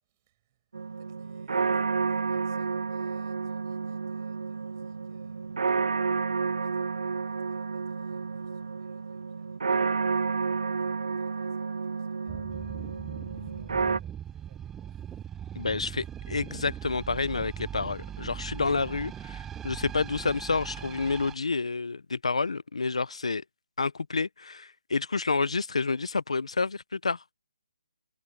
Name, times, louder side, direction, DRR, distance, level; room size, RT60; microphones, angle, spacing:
voice 1, 0.0-15.3 18.7-19.0, right 16 dB, 25° right, 6.7 m, -62 dB
sound 1, 0.7-14.0, right 5 dB, 80° right, 1.3 m, -30 dB
sound 2, 12.3-21.3, right 9 dB, 10° right, 0.3 m, -40 dB
voice 2, 15.5-19.1 19.6-23.4 23.8-27.3, left 4 dB, 90° left, 0.9 m, -29 dB
hypercardioid pair, 165°, 3 cm